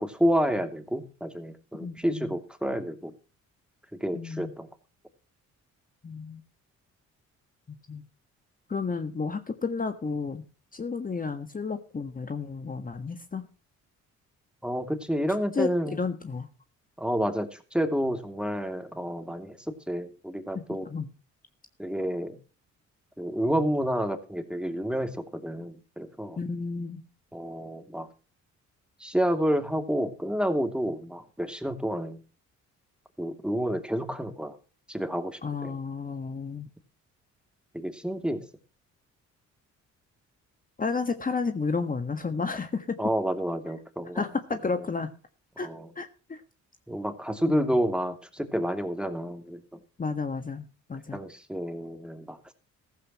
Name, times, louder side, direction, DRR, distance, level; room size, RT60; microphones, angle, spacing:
voice 1, 0.0-3.1 3.9-4.7 14.6-16.1 17.0-20.9 21.8-22.4 23.2-26.4 27.3-28.1 29.0-32.2 33.2-34.6 34.9-35.8 37.7-38.5 43.0-44.3 45.6-45.9 46.9-49.6 51.1-52.5, equal, 5° right, 7 dB, 2.8 m, -29 dB
voice 2, 1.8-2.3 4.1-4.5 6.0-6.4 7.9-8.0 8.7-10.4 10.7-13.4 15.5-16.5 20.5-21.1 26.4-27.0 35.4-36.7 40.8-43.0 44.1-45.1 45.6-45.7 45.9-46.4 47.5-47.8 50.0-51.2, left 4 dB, 30° left, 7 dB, 1.6 m, -32 dB
15.0 x 15.0 x 3.1 m, 0.35 s
cardioid pair, 90°, 30 cm